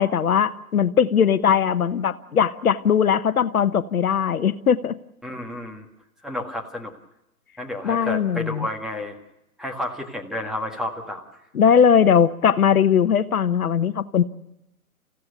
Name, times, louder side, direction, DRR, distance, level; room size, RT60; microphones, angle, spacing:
voice 1, 0.0-4.9 7.8-8.7 11.5-14.2, left 7 dB, 75° left, 13 dB, 1.1 m, -19 dB
voice 2, 5.2-5.8 6.2-6.9 7.6-9.2 9.6-11.2 11.9-12.1, left 1 dB, ahead, 1 dB, 1.7 m, -31 dB
29.0 x 16.0 x 6.7 m, 0.89 s
figure-of-eight pair, 130°, 44 cm